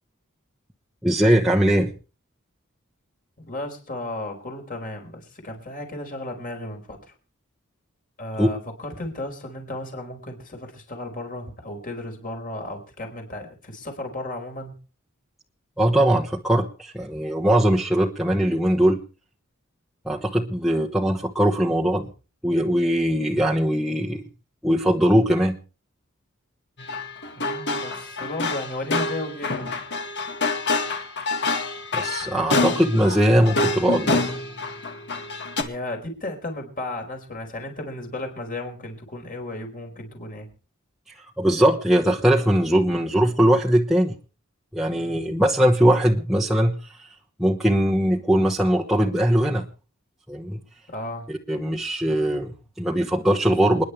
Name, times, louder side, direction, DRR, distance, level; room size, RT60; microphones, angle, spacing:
voice 1, 1.0-1.9 8.4-8.5 15.8-19.0 20.0-22.1 22.4-24.2 24.6-25.6 31.9-34.3 41.4-44.1 44.7-47.1 47.4-49.6 50.3-50.6 51.3-53.8, equal, ahead, -3 dB, 1.2 m, -20 dB
voice 2, 3.4-7.1 8.2-14.7 27.3-29.7 32.2-32.4 35.6-40.5 42.9-43.0 44.9-45.3 50.9-51.3, left 1 dB, 40° left, 3 dB, 4.6 m, -34 dB
sound 1, 26.8-35.6, left 3 dB, 55° left, 2.1 m, -27 dB
28.5 x 10.5 x 3.3 m, 0.36 s
head